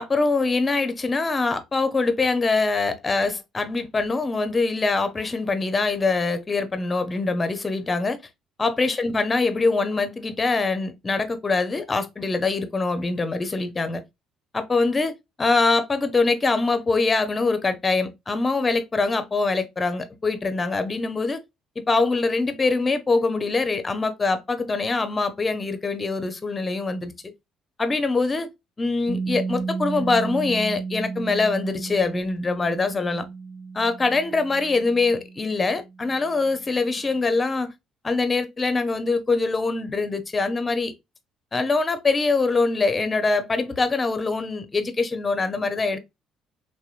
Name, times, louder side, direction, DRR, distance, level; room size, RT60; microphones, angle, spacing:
voice 1, 0.0-8.2 8.6-14.0 14.5-15.1 15.4-21.4 21.9-27.1 27.8-28.5 28.8-33.3 33.7-37.7 38.0-40.9 41.5-46.0, left 3 dB, 30° left, 0.6 m, -23 dB
Piano, 29.1-36.4, right 4 dB, 35° right, 1.1 m, -33 dB
2.9 x 2.2 x 2.4 m
supercardioid pair, 65°, 0 cm